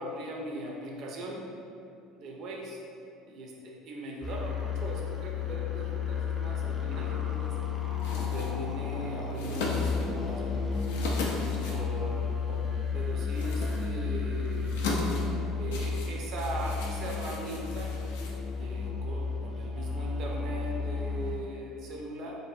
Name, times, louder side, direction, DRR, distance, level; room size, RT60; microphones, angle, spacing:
voice 1, 0.0-1.4 2.1-2.8 3.3-7.5 8.3-10.6 11.6-12.6 12.9-14.8 15.6-17.9 18.5-22.3, right 1 dB, 60° right, -1 dB, 0.5 m, -39 dB
sound 1, 4.2-21.4, left 5 dB, 10° left, 0.6 m, -32 dB
sound 2, 8.0-18.9, left 2 dB, 75° left, 0.3 m, -38 dB
2.6 x 2.5 x 2.4 m, 2.6 s
hypercardioid pair, 70°, 0 cm